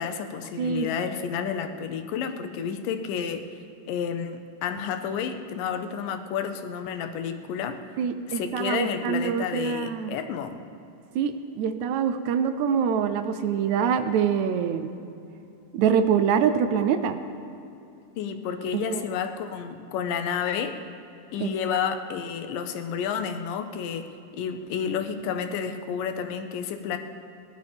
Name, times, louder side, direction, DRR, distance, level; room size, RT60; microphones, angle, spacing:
voice 1, 0.0-3.5 3.9-7.8 8.3-10.6 18.2-20.8 21.3-24.1 24.3-27.0, left 7 dB, 80° left, 7 dB, 2.4 m, -30 dB
voice 2, 0.6-0.9 8.0-10.1 11.2-14.9 15.7-17.2 18.9-19.0 21.4-21.5, right 7 dB, 80° right, 9 dB, 1.7 m, -25 dB
21.5 x 11.5 x 3.6 m, 2.8 s
omnidirectional pair, 4.0 m